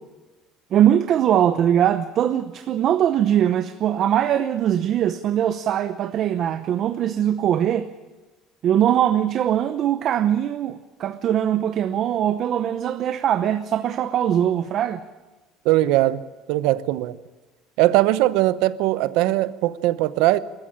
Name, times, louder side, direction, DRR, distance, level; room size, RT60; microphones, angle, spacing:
voice 1, 0.7-7.9 8.6-15.0, right 10 dB, 45° right, 0.8 m, -21 dB
voice 2, 15.6-16.2 16.5-17.2 17.8-20.4, right 16 dB, 80° right, 0.9 m, -20 dB
22.5 x 14.0 x 10.0 m
cardioid pair, 145°, 0 cm